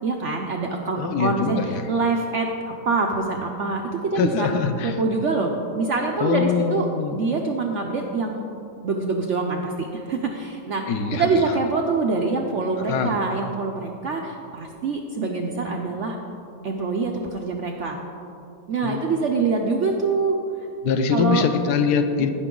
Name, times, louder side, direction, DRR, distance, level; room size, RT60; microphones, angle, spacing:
voice 1, 0.0-1.6 1.9-4.5 4.8-8.5 8.8-10.8 11.1-16.2 16.6-18.0 18.7-20.4 21.1-21.4 22.2-22.3, right 4 dB, 65° right, 2 dB, 0.7 m, -25 dB
voice 2, 1.0-1.9 4.1-5.0 6.2-7.2 10.9-11.5 12.9-13.2 18.8-19.0 20.8-22.3, left 6 dB, 70° left, 7 dB, 1.1 m, -23 dB
15.5 x 5.8 x 3.7 m, 2.7 s
omnidirectional pair, 1.9 m